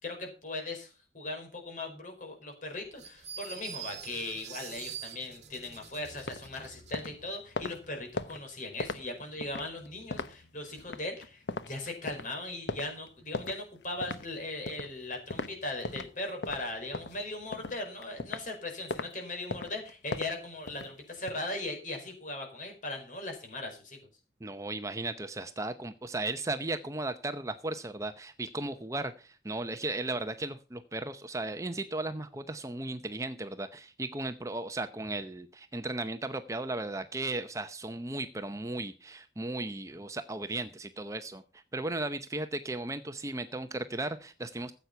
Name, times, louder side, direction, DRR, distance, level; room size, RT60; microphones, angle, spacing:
voice 1, 0.0-24.0, left 2 dB, 45° left, 2 dB, 4.9 m, -39 dB
sound 1, 3.0-7.0, right 9 dB, 40° right, 2.1 m, -45 dB
sound 2, 6.0-16.2 16.4-18.5 18.9-19.1 19.5-21.3, left 3 dB, 80° left, 1.0 m, -39 dB
voice 2, 24.4-44.7, right 2 dB, 20° right, 9 dB, 0.7 m, -36 dB
14.5 x 8.2 x 5.8 m, 0.35 s
head